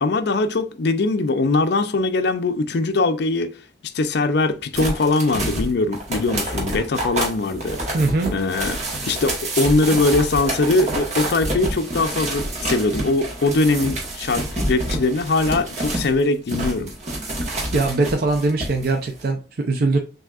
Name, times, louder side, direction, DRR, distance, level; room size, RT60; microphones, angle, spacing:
voice 1, 0.0-3.5 3.9-7.8 8.3-8.8 9.1-16.9, left 3 dB, 60° left, 0.5 m, -21 dB
sound 1, 4.7-16.1 16.5-18.9 19.2-19.3, right 1 dB, 40° right, 1.2 m, -28 dB
voice 2, 7.9-8.3 17.7-20.0, right 3 dB, 55° right, 0.5 m, -21 dB
6.0 x 2.7 x 2.3 m
head